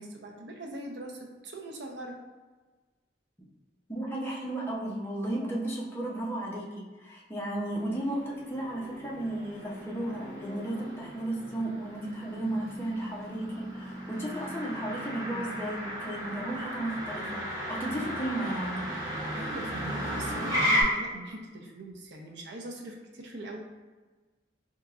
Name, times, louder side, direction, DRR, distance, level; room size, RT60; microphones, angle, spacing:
voice 1, 0.0-2.2 18.9-19.0 19.3-23.6, right 1 dB, 65° right, 1 dB, 0.6 m, -42 dB
voice 2, 3.9-18.9, right 1 dB, 15° left, -4 dB, 0.7 m, -34 dB
Motor vehicle (road), 7.7-20.8, equal, 20° right, 0.9 m, -35 dB
4.6 x 2.9 x 2.4 m, 1.3 s
head